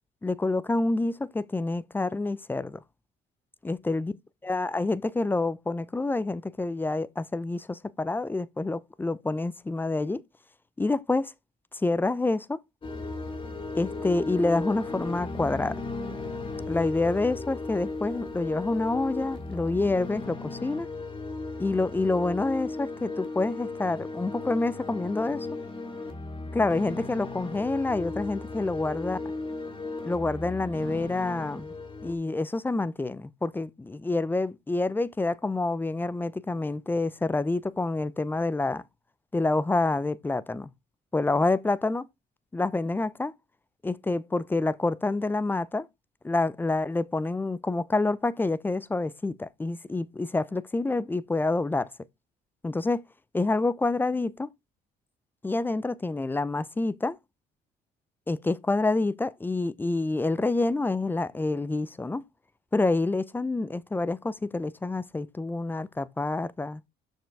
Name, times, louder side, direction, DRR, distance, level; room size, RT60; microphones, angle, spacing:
voice 1, 0.2-2.8 3.6-4.1 4.4-10.2 10.8-11.3 11.7-12.6 13.8-15.7 16.7-20.9 21.6-25.5 26.5-29.2 30.0-31.7 32.0-38.8 39.3-40.7 41.1-42.0 42.5-43.3 43.8-45.9 46.2-51.9 52.6-53.0 53.3-54.5 55.4-57.2 58.3-62.2 62.7-66.8, left 2 dB, 10° left, 0.5 m, -27 dB
sound 1, 12.8-32.1, left 3 dB, 30° left, 2.1 m, -36 dB
6.7 x 6.4 x 3.4 m
cardioid pair, 110°, 17 cm